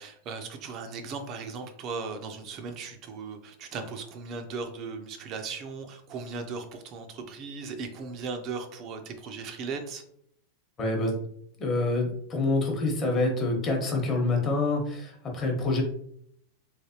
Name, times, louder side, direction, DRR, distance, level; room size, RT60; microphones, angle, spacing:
voice 1, 0.0-10.0, right 4 dB, 35° right, 6 dB, 0.4 m, -37 dB
voice 2, 10.8-11.2 11.6-15.8, left 2 dB, 25° left, 0 dB, 0.9 m, -26 dB
3.2 x 3.0 x 2.8 m, 0.67 s
supercardioid pair, 140°, 0 cm